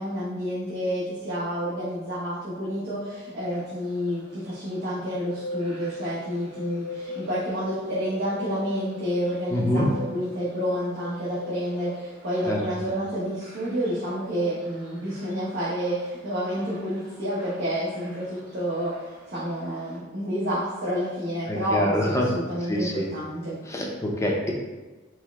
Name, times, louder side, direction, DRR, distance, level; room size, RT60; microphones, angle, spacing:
voice 1, 0.0-23.6, equal, 60° right, -10 dB, 0.9 m, -29 dB
sound 1, 3.5-20.0, left 2 dB, 25° right, 1.3 m, -43 dB
voice 2, 9.5-9.9 12.5-12.6 21.5-22.3 22.7-23.0 23.7-24.5, left 1 dB, 15° left, -1 dB, 0.5 m, -25 dB
4.5 x 2.0 x 3.4 m, 1.2 s
head